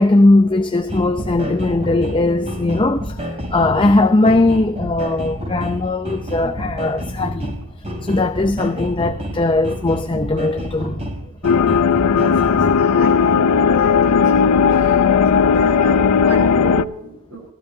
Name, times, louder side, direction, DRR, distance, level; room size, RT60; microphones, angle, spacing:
voice 1, 0.0-7.6 8.0-11.0 11.6-11.7 12.9-13.1, left 2 dB, 20° left, 0.6 m, -18 dB
sound 1, 0.9-12.7, equal, 30° right, 3.3 m, -29 dB
sound 2, 11.4-16.8, left 6 dB, 85° left, 0.5 m, -15 dB
voice 2, 12.1-17.4, right 2 dB, 85° right, 4.3 m, -32 dB
17.5 x 15.0 x 2.7 m
head